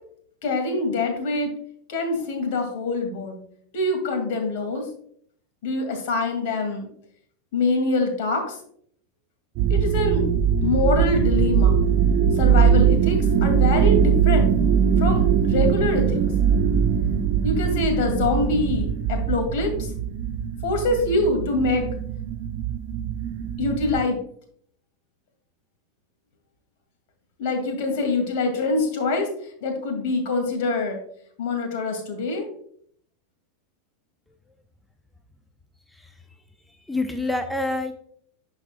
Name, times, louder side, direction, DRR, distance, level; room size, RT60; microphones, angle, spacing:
voice 1, 0.4-1.5 1.9-3.4 3.7-4.8 5.6-6.9 7.5-8.4 9.7-10.2 10.6-11.8 12.4-14.5 15.0-16.2 17.4-19.7 20.6-21.8 23.6-24.2 27.4-29.3 29.6-31.0 31.4-32.5, left 3 dB, 65° left, 4 dB, 2.2 m, -24 dB
sound 1, 9.6-24.0, right 7 dB, 55° right, 0.8 m, -21 dB
voice 2, 36.9-37.9, left 2 dB, 5° left, 6 dB, 0.7 m, -27 dB
11.5 x 4.8 x 2.2 m, 0.63 s
hypercardioid pair, 100°, 0 cm